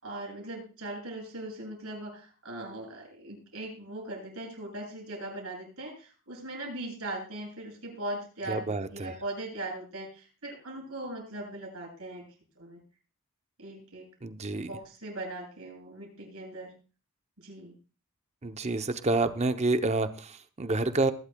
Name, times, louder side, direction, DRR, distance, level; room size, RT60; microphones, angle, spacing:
voice 1, 0.0-12.3 12.6-12.8 13.6-14.1 14.5-16.7 17.4-17.7, right 1 dB, 75° right, -2 dB, 7.9 m, -39 dB
voice 2, 8.5-9.1 14.2-14.7 18.4-21.1, right 2 dB, 30° right, 10 dB, 0.7 m, -28 dB
21.5 x 11.5 x 2.3 m, 0.35 s
head